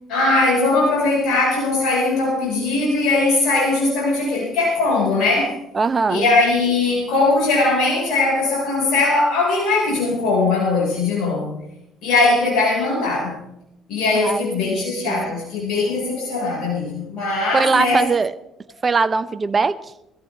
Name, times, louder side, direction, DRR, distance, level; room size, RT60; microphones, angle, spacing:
voice 1, 0.1-5.5 6.1-11.6 12.0-13.4 13.9-18.0, left 3 dB, 65° left, -3 dB, 4.7 m, -20 dB
voice 2, 5.7-6.3 14.2-14.4 14.7-15.4 17.5-18.3 18.8-19.9, right 4 dB, 35° right, 13 dB, 0.9 m, -21 dB
21.0 x 13.5 x 3.3 m, 0.84 s
hypercardioid pair, 55°, 0 cm